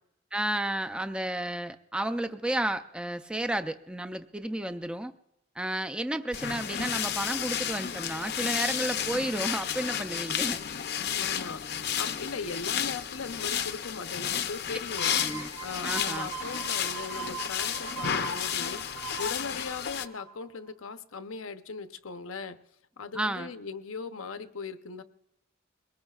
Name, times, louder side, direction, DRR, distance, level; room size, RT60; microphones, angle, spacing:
voice 1, 0.3-5.1 5.6-10.6 15.2-15.5 15.8-16.3 23.1-23.5, right 1 dB, 5° right, 8 dB, 0.5 m, -32 dB
sound 1, 6.3-20.1, left 9 dB, 50° left, 0.6 m, -32 dB
voice 2, 11.0-15.2 15.6-22.6 23.0-25.0, left 4 dB, 85° left, 9 dB, 0.8 m, -39 dB
sound 2, 15.0-20.5 20.9-21.0, right 8 dB, 80° right, 1.2 m, -41 dB
22.5 x 19.0 x 2.4 m, 0.82 s
head